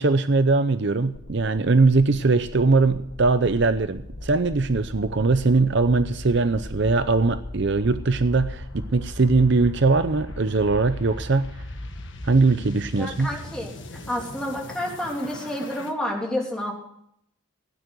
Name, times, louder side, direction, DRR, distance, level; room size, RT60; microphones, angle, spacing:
voice 1, 0.0-11.5 12.2-13.3, right 3 dB, 55° right, 11 dB, 0.6 m, -21 dB
sound 1, 1.0-15.9, left 1 dB, 60° left, 1.4 m, -38 dB
voice 2, 13.0-16.7, left 1 dB, 5° left, -2 dB, 3.0 m, -30 dB
16.0 x 9.6 x 6.1 m, 0.72 s
head